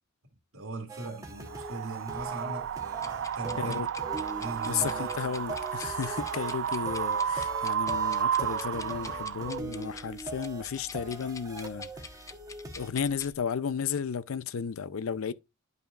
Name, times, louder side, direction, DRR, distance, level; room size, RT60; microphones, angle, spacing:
voice 1, 0.5-3.9 4.4-5.1, right 2 dB, 80° right, 1.8 m, -40 dB
sound 1, 0.9-12.9, right 2 dB, 15° right, 1.1 m, -42 dB
Wind, 1.5-9.6, right 8 dB, 60° right, 0.3 m, -32 dB
sound 2, 2.9-13.3, left 4 dB, 15° left, 0.4 m, -48 dB
voice 2, 3.6-3.9 4.6-12.2 12.8-15.3, left 7 dB, 75° left, 0.5 m, -33 dB
11.0 x 5.5 x 2.4 m
head